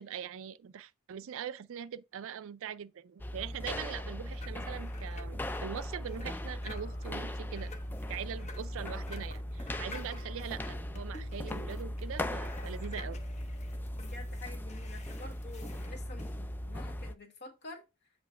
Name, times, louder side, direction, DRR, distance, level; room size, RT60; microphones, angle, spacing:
voice 1, 0.0-7.7 8.1-13.2, right 8 dB, 65° right, 0.4 m, -42 dB
sound 1, 3.2-17.1, left 1 dB, 10° left, 0.3 m, -38 dB
sound 2, 4.2-16.3, left 3 dB, 35° left, 0.7 m, -52 dB
voice 2, 14.0-17.8, left 3 dB, 55° left, 1.4 m, -49 dB
7.7 x 3.0 x 4.4 m
head